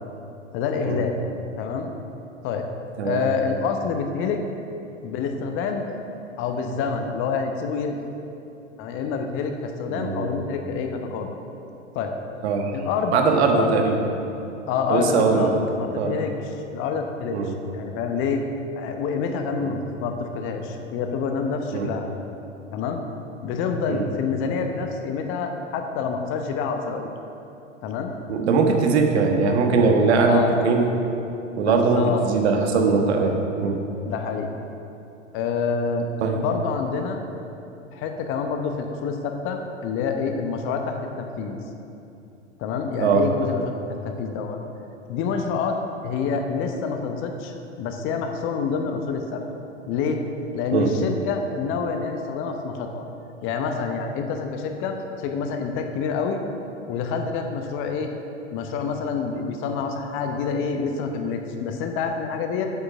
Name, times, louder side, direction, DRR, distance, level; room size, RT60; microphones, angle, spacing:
voice 1, 0.5-1.1 1.6-1.9 2.4-2.7 3.0-4.4 5.0-5.9 6.4-8.1 8.8-11.4 11.9-12.1 12.7-13.7 14.7-15.5 15.8-18.4 18.8-22.1 22.7-23.0 23.4-27.1 27.8-28.1 30.3-30.5 31.6-32.2 34.0-34.5 35.3-36.1 36.3-37.2 37.9-41.6 42.6-43.7 44.0-44.6 45.1-45.8 46.0-49.4 49.9-50.2 50.5-53.1 53.4-56.4 56.9-58.1 58.5-62.7, left 5 dB, 35° left, 5 dB, 0.9 m, -27 dB
voice 2, 9.9-10.3 12.4-12.7 13.1-13.9 14.9-15.5 15.9-16.2 17.3-17.5 19.6-19.7 21.7-21.9 23.9-24.0 28.3-30.9 31.6-33.8 36.2-36.4 43.0-43.3 50.7-50.9, right 4 dB, 55° right, 3 dB, 1.4 m, -21 dB
8.0 x 7.9 x 6.0 m, 2.8 s
figure-of-eight pair, 95°, 38 cm